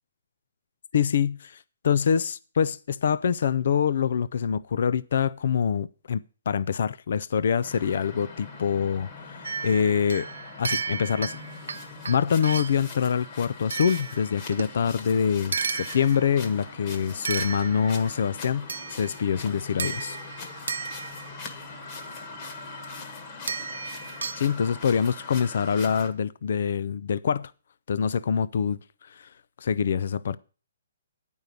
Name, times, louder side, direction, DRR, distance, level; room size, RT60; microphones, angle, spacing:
voice 1, 0.9-10.3 10.6-11.4 12.1-20.2 24.4-27.5 27.9-28.8 29.1-29.3 29.6-30.4, left 7 dB, 60° left, 0.5 m, -25 dB
sound 1, 7.6-26.1, left 3 dB, 35° left, 1.5 m, -42 dB
sound 2, 9.4-12.9 13.7-14.8 15.5-16.5 17.2-18.1 18.7-19.3 19.8-21.5 23.5-24.4, right 5 dB, 80° right, 0.6 m, -34 dB
9.1 x 5.3 x 8.1 m
hypercardioid pair, 155°, 0 cm